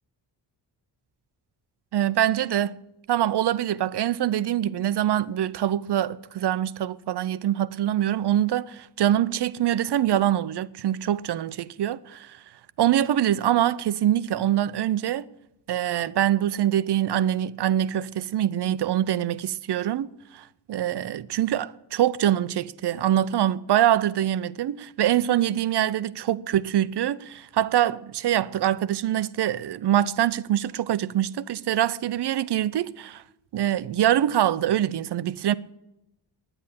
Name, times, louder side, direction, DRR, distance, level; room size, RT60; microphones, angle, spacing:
voice 1, 1.9-2.8 3.1-12.4 12.8-15.2 15.7-33.2 33.5-35.5, right 11 dB, 65° right, 0.7 m, -24 dB
10.0 x 9.7 x 9.9 m
wide cardioid pair, 150°, 44 cm